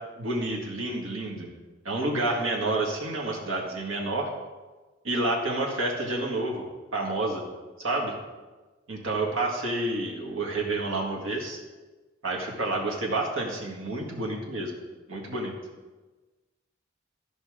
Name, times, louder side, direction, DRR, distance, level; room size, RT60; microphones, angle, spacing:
voice 1, 0.2-1.5 1.9-4.3 5.0-7.4 7.8-8.1 8.9-11.6 12.2-14.8 15.1-15.6, right 2 dB, 80° right, 0 dB, 1.8 m, -29 dB
13.5 x 5.2 x 5.0 m, 1.3 s
head